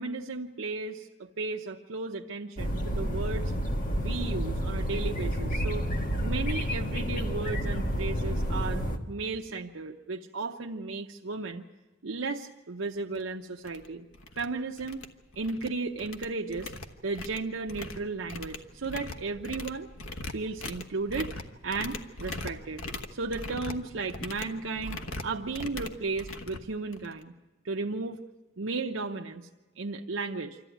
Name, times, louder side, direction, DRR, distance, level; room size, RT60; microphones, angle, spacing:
voice 1, 0.0-3.5 4.0-11.6 12.0-14.1 14.4-15.0 15.4-16.7 17.0-19.9 20.3-21.3 21.6-22.8 23.1-27.3 27.6-28.2 28.6-29.5 29.8-30.6, right 3 dB, 70° right, 2 dB, 0.8 m, -34 dB
sound 1, 2.6-9.0, equal, 40° left, 1.5 m, -30 dB
sound 2, 13.1-13.2 13.6-13.9 14.1-14.5 14.8-15.7 16.0-27.2, left 2 dB, 85° left, 1.3 m, -40 dB
25.5 x 14.0 x 9.2 m, 1.2 s
head